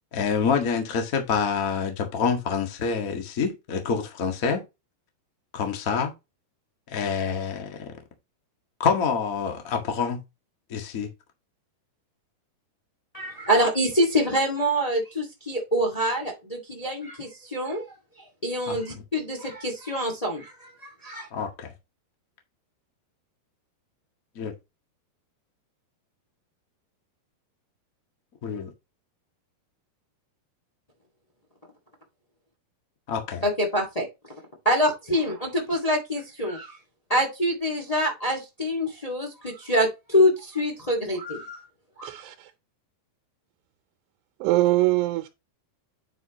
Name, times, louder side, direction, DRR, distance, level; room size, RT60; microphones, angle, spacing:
voice 1, 0.1-4.6 5.5-6.1 6.9-7.8 8.8-10.2 10.7-11.1 18.7-19.0 21.3-21.7 24.3-24.5 28.4-28.7 33.1-33.4, left 6 dB, 70° left, 0.8 m, -27 dB
voice 2, 13.1-17.8 18.4-21.3 33.4-34.1 34.6-36.8 37.1-41.6 42.0-42.1, equal, 50° left, 0.4 m, -25 dB
voice 3, 42.0-42.5 44.4-45.3, right 17 dB, 85° right, 2.9 m, -23 dB
9.2 x 5.7 x 3.0 m
omnidirectional pair, 4.7 m